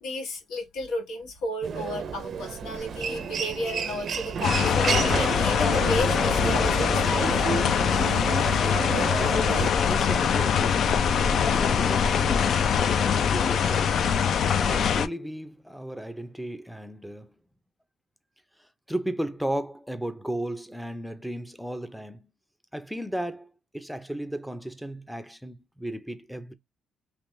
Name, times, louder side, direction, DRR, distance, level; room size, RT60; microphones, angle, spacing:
voice 1, 0.0-7.3, left 1 dB, 85° left, 1.4 m, -32 dB
Human voice, 1.6-9.7, right 6 dB, 55° right, 0.5 m, -31 dB
sound 1, 4.4-15.1, left 7 dB, 65° left, 0.4 m, -23 dB
voice 2, 9.8-11.0 11.4-14.0 14.5-17.3 18.6-22.3 22.7-26.5, right 1 dB, ahead, 0.5 m, -35 dB
3.3 x 3.0 x 2.6 m
cardioid pair, 90°, 0 cm